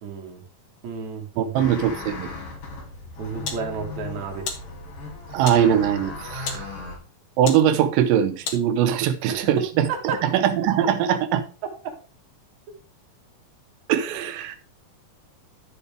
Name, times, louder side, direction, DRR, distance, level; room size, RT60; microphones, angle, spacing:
voice 1, 0.0-0.4 0.8-1.7 3.2-4.5 9.3-9.4 9.9-10.2, right 5 dB, 60° right, 3.0 m, -32 dB
voice 2, 1.4-2.3 5.3-6.7 7.4-9.9 10.2-11.4 13.9-14.6, right 9 dB, 90° right, 2.5 m, -21 dB
sound 1, 1.6-7.0, left 2 dB, 80° left, 4.6 m, -37 dB
sound 2, 2.8-9.1, left 6 dB, 55° left, 1.9 m, -39 dB
12.0 x 6.7 x 3.5 m
omnidirectional pair, 3.9 m